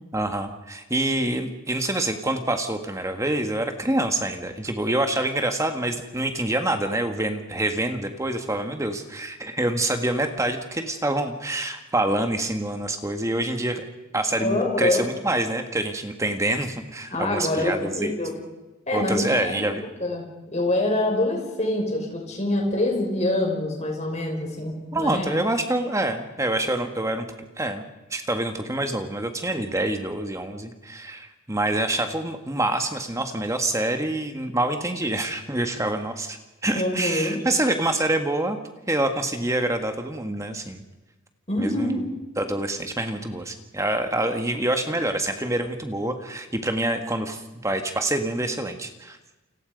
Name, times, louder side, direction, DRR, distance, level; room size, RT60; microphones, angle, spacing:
voice 1, 0.1-13.8 14.1-18.1 18.9-19.9 24.9-27.3 27.6-27.8 28.1-36.4 36.6-38.6 38.9-40.8 41.6-42.0 42.4-49.2, right 1 dB, 15° right, 6 dB, 1.7 m, -26 dB
voice 2, 14.4-15.1 17.1-18.4 18.9-19.7 20.0-20.3 20.5-25.4 36.7-37.4 41.5-42.0, left 1 dB, 30° left, 1 dB, 6.0 m, -25 dB
29.5 x 26.0 x 5.3 m, 1.1 s
head